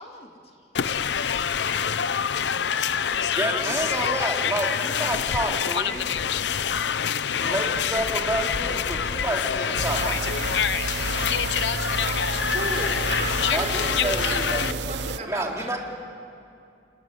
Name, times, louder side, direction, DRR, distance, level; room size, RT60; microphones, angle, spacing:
voice 1, 0.0-1.5 2.9-3.6 13.2-13.8, left 1 dB, 35° left, 1 dB, 2.4 m, -48 dB
sound 1, 0.7-14.7, left 7 dB, 70° left, 0.6 m, -26 dB
voice 2, 3.3-6.1 7.0-10.3 13.5-14.6 15.3-15.8, right 1 dB, 15° right, 0 dB, 3.0 m, -29 dB
sound 2, 9.8-15.2, right 4 dB, 75° right, 0.8 m, -31 dB
voice 3, 11.9-15.8, right 2 dB, 45° right, 3 dB, 4.5 m, -35 dB
29.0 x 18.5 x 9.4 m, 2.5 s
head